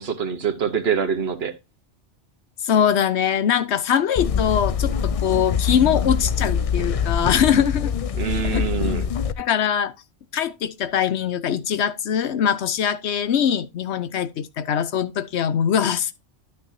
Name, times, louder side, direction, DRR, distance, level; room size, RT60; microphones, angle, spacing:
voice 1, 0.0-1.6 8.2-9.1, right 7 dB, 60° right, 1.2 m, -25 dB
voice 2, 2.6-7.9 8.5-8.7 9.4-9.9 10.3-16.1, left 8 dB, 70° left, 0.9 m, -22 dB
sound 1, 4.2-9.3, left 7 dB, 55° left, 0.4 m, -24 dB
12.0 x 6.5 x 2.7 m
omnidirectional pair, 1.2 m